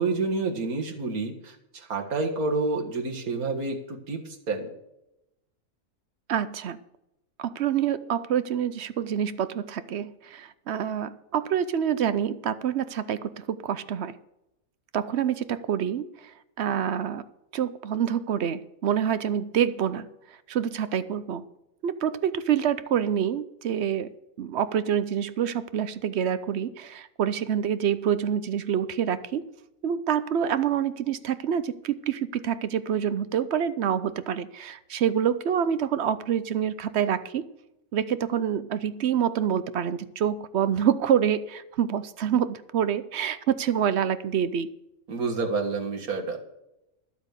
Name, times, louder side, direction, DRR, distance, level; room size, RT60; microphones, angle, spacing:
voice 1, 0.0-4.7 45.1-46.4, right 3 dB, 85° right, 2 dB, 2.2 m, -29 dB
voice 2, 6.3-6.8 7.4-14.2 14.9-16.0 16.6-17.2 17.5-20.1 20.5-21.4 21.8-24.1 24.4-29.4 29.8-37.4 37.9-44.7, right 9 dB, 60° right, 14 dB, 0.8 m, -27 dB
12.0 x 8.1 x 6.6 m, 0.88 s
omnidirectional pair, 1.5 m